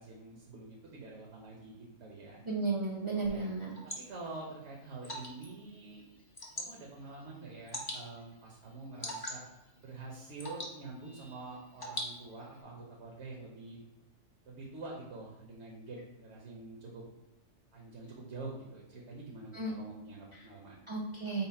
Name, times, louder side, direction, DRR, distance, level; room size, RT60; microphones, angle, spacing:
voice 1, 0.0-2.4 3.1-3.5 3.8-6.0 6.5-9.4 9.8-13.8 14.4-17.0 17.7-20.8, right 3 dB, 65° right, -2 dB, 1.0 m, -46 dB
voice 2, 2.4-3.7 19.5-19.7 20.9-21.5, right 3 dB, 45° right, -3 dB, 0.4 m, -33 dB
Water / Drip, 3.2-12.6, equal, 25° left, 0.5 m, -45 dB
5.6 x 2.0 x 4.1 m, 0.95 s
omnidirectional pair, 1.3 m